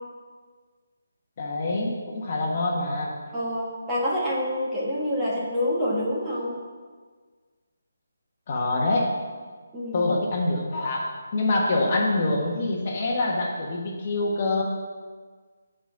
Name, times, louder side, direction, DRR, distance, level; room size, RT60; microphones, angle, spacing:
voice 1, 1.4-3.1 8.5-9.1 9.9-14.6, left 2 dB, 30° left, -1 dB, 1.3 m, -25 dB
voice 2, 3.3-6.6 9.7-10.1, left 1 dB, 10° right, -7 dB, 1.3 m, -27 dB
8.2 x 5.0 x 7.3 m, 1.5 s
hypercardioid pair, 175°, 0 cm